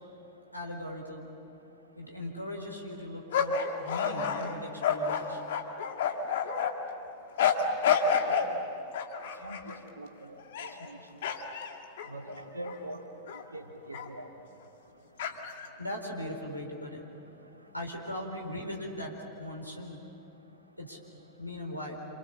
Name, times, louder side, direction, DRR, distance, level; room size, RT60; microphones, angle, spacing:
voice 1, 0.5-1.2 2.0-5.4 15.8-17.0 17.7-20.0 20.8-21.0 21.4-22.1, left 1 dB, 90° left, 1 dB, 4.5 m, -39 dB
sound 1, 3.3-6.7 7.4-8.5 8.9-9.7 10.4-10.9 11.2-12.8 13.3-13.4 13.9-14.1 15.2-15.7, left 6 dB, 60° left, 2.0 m, -29 dB
voice 2, 8.0-8.4 9.4-11.0 12.1-13.0 13.5-14.3, right 1 dB, 80° right, 3 dB, 2.6 m, -43 dB
28.0 x 28.0 x 7.2 m, 2.7 s
figure-of-eight pair, 90°, 0 cm